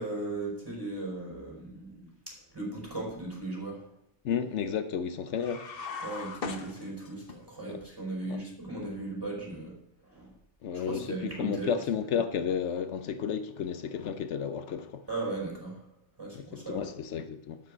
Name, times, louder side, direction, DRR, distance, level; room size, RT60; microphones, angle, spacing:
voice 1, 0.0-2.1 2.5-3.8 6.0-9.7 10.0-10.3 10.7-11.7 15.1-15.8 16.2-16.9, right 2 dB, 20° right, 5.1 m, -37 dB
voice 2, 4.2-5.6 7.7-7.8 8.3-8.5 10.6-15.0 16.3-17.6, left 7 dB, 85° left, 1.1 m, -32 dB
sound 1, 5.4-7.4, left 4 dB, 55° left, 1.2 m, -39 dB
12.0 x 5.9 x 6.2 m
omnidirectional pair, 1.2 m